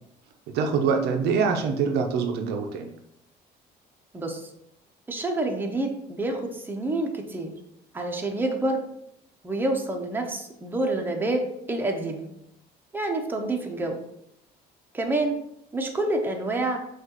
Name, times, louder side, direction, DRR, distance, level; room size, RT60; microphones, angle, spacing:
voice 1, 0.5-2.9, right 5 dB, 75° right, 4 dB, 0.5 m, -24 dB
voice 2, 4.1-4.5 5.1-7.6 7.9-8.8 9.4-11.4 11.7-12.3 12.9-14.0 14.9-15.4 15.7-16.8, right 2 dB, 10° right, 2 dB, 0.7 m, -27 dB
6.0 x 2.4 x 2.9 m, 0.77 s
cardioid pair, 110°, 17 cm